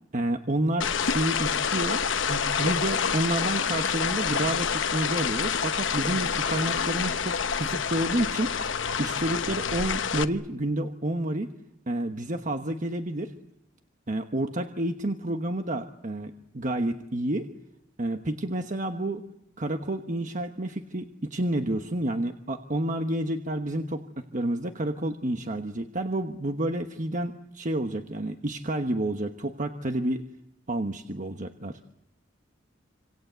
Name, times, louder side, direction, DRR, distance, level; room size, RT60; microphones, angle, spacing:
voice 1, 0.1-2.0 2.3-8.5 9.0-11.5 11.9-13.3 14.1-17.5 18.0-19.3 19.6-24.0 24.3-30.2 30.7-31.8, right 1 dB, 40° right, 6 dB, 1.2 m, -29 dB
sound 1, 0.8-10.2, left 6 dB, 75° left, 1.0 m, -27 dB
27.0 x 26.5 x 8.2 m, 0.81 s
head